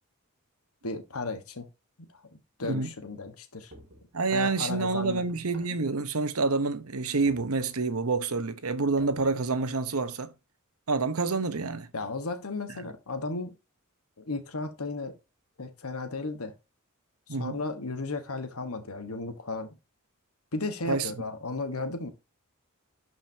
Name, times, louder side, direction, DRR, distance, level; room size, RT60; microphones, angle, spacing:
voice 1, 0.8-1.7 2.1-2.2 2.6-3.7 4.3-5.2 11.9-13.5 14.2-15.2 15.6-16.5 17.3-19.8 20.5-22.1, left 3 dB, 85° left, 1.4 m, -34 dB
sound 1, 3.7-4.2 5.3-5.9 7.3-7.9 9.0-9.7, right 1 dB, 60° right, 2.3 m, -52 dB
voice 2, 4.1-10.3 10.9-11.9 17.3-17.6 20.9-21.1, right 3 dB, 90° right, 1.0 m, -28 dB
12.0 x 5.2 x 2.8 m
head